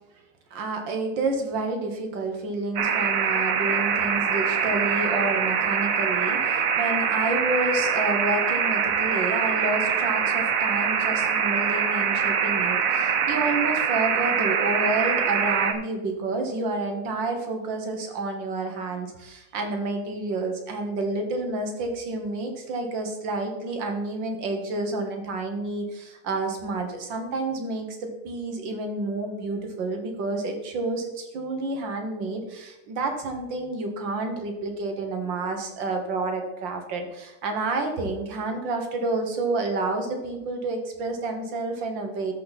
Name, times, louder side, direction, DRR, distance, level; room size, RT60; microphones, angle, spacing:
voice 1, 0.5-42.3, right 2 dB, 85° right, 4 dB, 2.1 m, -29 dB
sound 1, 2.8-15.7, right 7 dB, 60° right, 1.0 m, -24 dB
13.0 x 5.2 x 4.1 m, 0.98 s
omnidirectional pair, 2.0 m